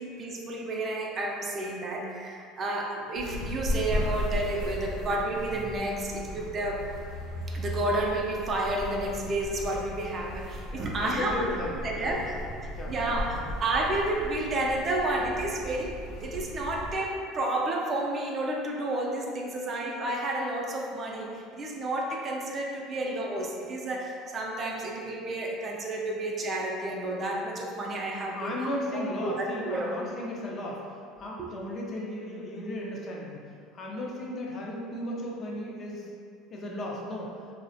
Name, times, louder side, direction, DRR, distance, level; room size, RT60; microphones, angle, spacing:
voice 1, 0.0-6.9 7.5-11.5 11.8-12.3 12.6-28.6 28.9-29.9 31.4-31.5, right 1 dB, 40° right, -1 dB, 0.4 m, -31 dB
sound 1, 3.2-16.9, left 1 dB, 80° left, 0.8 m, -36 dB
voice 2, 10.7-13.5 28.3-30.8 31.2-33.4 33.7-36.1 36.5-37.3, left 1 dB, 45° left, -3 dB, 0.5 m, -36 dB
2.3 x 2.0 x 2.6 m, 2.3 s
hypercardioid pair, 80°, 0 cm